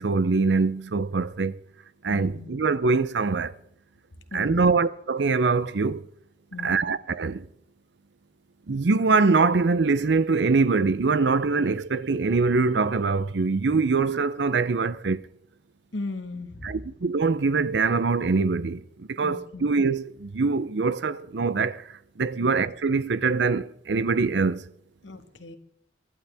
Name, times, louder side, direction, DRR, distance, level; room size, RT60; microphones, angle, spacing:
voice 1, 0.0-1.5 2.0-3.5 4.3-6.0 6.6-7.4 8.7-15.2 16.6-21.8 22.2-24.6, right 4 dB, 70° right, 0.6 m, -23 dB
voice 2, 2.1-2.5 4.3-4.7 6.5-6.8 15.9-16.8 19.2-19.7 22.4-22.6 25.0-25.6, left 3 dB, 85° left, 1.7 m, -37 dB
23.5 x 11.5 x 3.5 m
head